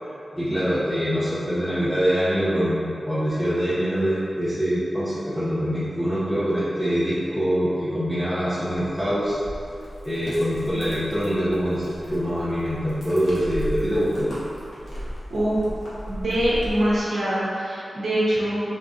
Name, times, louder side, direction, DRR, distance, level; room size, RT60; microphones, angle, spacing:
voice 1, 0.3-9.4 10.0-14.3, equal, ahead, -12 dB, 0.6 m, -24 dB
sound 1, 8.7-17.0, equal, 80° left, 1.0 m, -36 dB
voice 2, 15.3-15.6 16.1-18.6, right 1 dB, 70° right, -10 dB, 0.9 m, -24 dB
3.6 x 3.4 x 2.6 m, 2.6 s
wide cardioid pair, 115°, 0 cm